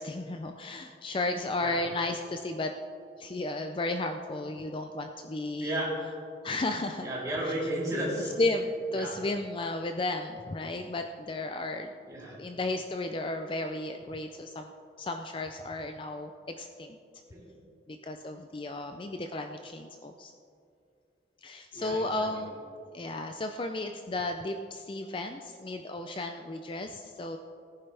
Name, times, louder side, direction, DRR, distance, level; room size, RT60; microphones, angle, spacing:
voice 1, 0.0-2.7 3.2-5.8 6.4-7.1 7.4-7.5 8.4-8.7 8.9-11.9 12.4-14.7 15.0-17.0 17.9-20.3 21.4-22.5 22.9-27.4, left 2 dB, 30° left, 6 dB, 0.4 m, -34 dB
voice 2, 5.6-5.9 7.0-8.3 8.9-9.2 12.1-12.4 17.3-17.5 21.7-22.3, right 1 dB, 20° right, -7 dB, 3.5 m, -33 dB
18.0 x 10.0 x 3.4 m, 2.5 s
head